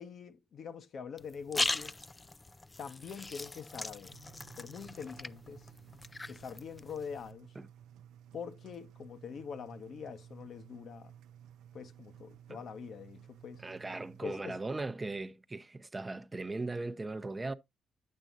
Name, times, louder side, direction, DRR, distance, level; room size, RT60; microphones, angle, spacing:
voice 1, 0.0-1.9 2.8-4.1 4.6-5.7 6.3-7.5 8.3-11.1 11.7-13.6 14.2-14.6, left 6 dB, 60° left, 0.9 m, -44 dB
sound 1, 1.2-7.3, left 2 dB, 20° left, 0.4 m, -39 dB
Engine, 4.1-14.2, right 9 dB, 85° right, 0.4 m, -55 dB
voice 2, 13.6-17.5, right 3 dB, 20° right, 0.6 m, -38 dB
8.9 x 7.5 x 2.6 m
cardioid pair, 90°, 0 cm